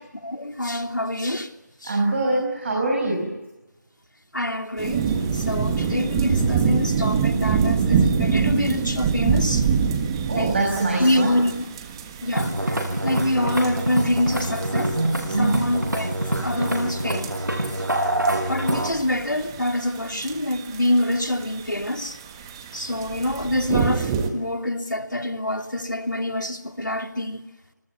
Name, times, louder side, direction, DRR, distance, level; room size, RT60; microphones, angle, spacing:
voice 1, 0.2-1.5 1.8-2.0 4.3-9.7 10.3-10.5 11.0-11.7 12.2-15.0 15.4-16.1 16.4-17.3 18.5-22.2 22.7-27.5, left 1 dB, 85° left, 3.1 m, -26 dB
voice 2, 1.8-3.3 10.3-11.3 15.3-15.6, right 2 dB, 35° right, 6.3 m, -23 dB
sound 1, 4.8-24.3, right 6 dB, 15° right, 1.5 m, -26 dB
Musical instrument, 12.2-18.9, right 1 dB, 85° right, 7.7 m, -25 dB
28.5 x 20.5 x 9.9 m
figure-of-eight pair, 160°, 10 cm